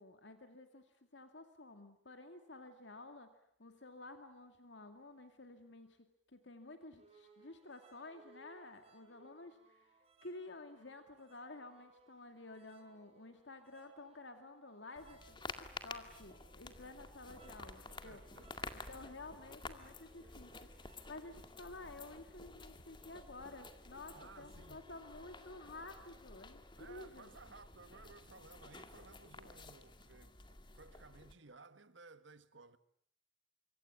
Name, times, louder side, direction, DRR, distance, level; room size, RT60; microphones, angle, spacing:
voice 1, 0.0-18.2 18.7-26.6 26.9-27.3, left 2 dB, 65° left, 2.2 m, -52 dB
sound 1, 7.0-22.3, right 2 dB, 30° right, 5.0 m, -66 dB
sound 2, 15.0-31.3, left 3 dB, 25° left, 2.0 m, -52 dB
voice 2, 18.0-18.8 24.1-24.8 26.8-32.8, right 4 dB, 70° right, 1.7 m, -58 dB
26.5 x 25.0 x 8.5 m
head